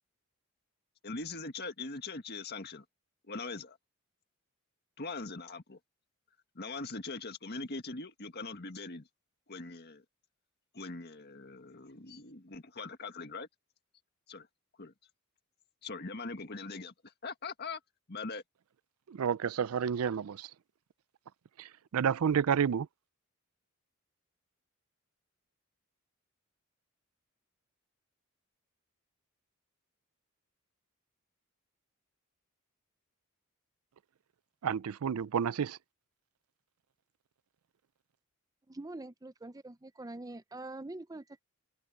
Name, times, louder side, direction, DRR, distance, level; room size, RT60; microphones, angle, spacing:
voice 1, 1.0-2.9 3.3-3.8 5.0-5.8 6.6-9.1 9.5-10.0 10.7-13.5 14.3-14.5 14.8-14.9 15.8-17.8 18.1-18.4, left 3 dB, 50° left, 1.8 m, -41 dB
voice 2, 19.1-20.5 21.6-22.9 34.6-35.8, right 7 dB, 75° right, 0.4 m, -30 dB
voice 3, 38.7-41.4, right 2 dB, 15° right, 0.6 m, -44 dB
head